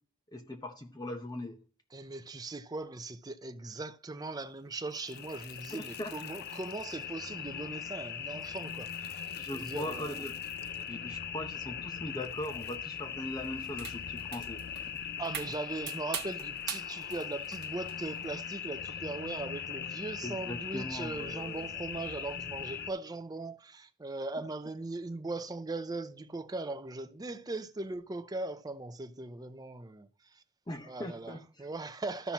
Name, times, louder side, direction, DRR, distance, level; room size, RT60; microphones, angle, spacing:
voice 1, 0.3-1.6 5.7-6.1 9.4-10.3 10.9-14.6 20.2-21.7 30.7-31.7, left 1 dB, 20° left, 0.8 m, -40 dB
voice 2, 1.9-9.2 9.5-10.2 15.2-30.4 30.9-32.3, right 2 dB, 20° right, 0.5 m, -39 dB
sound 1, 4.9-22.9, left 8 dB, 50° left, 0.5 m, -40 dB
sound 2, 13.4-18.3, right 9 dB, 50° right, 1.1 m, -44 dB
13.5 x 5.7 x 2.9 m
head